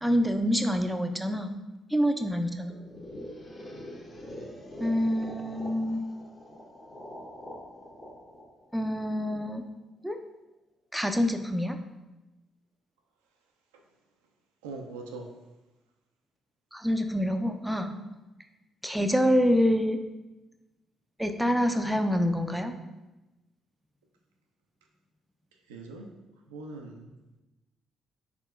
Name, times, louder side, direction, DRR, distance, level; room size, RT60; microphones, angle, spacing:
voice 1, 0.0-1.5 1.9-2.7 4.8-6.0 8.7-9.6 10.0-10.2 10.9-11.8 16.7-18.0 18.8-20.0 21.2-22.7, equal, 5° right, 6 dB, 0.4 m, -26 dB
sound 1, 2.7-9.6, left 1 dB, 35° left, 0.8 m, -44 dB
voice 2, 14.6-15.3 25.7-26.1 26.5-27.1, right 3 dB, 75° right, 2 dB, 0.3 m, -41 dB
4.2 x 3.6 x 2.4 m, 1.0 s
figure-of-eight pair, 40°, 0 cm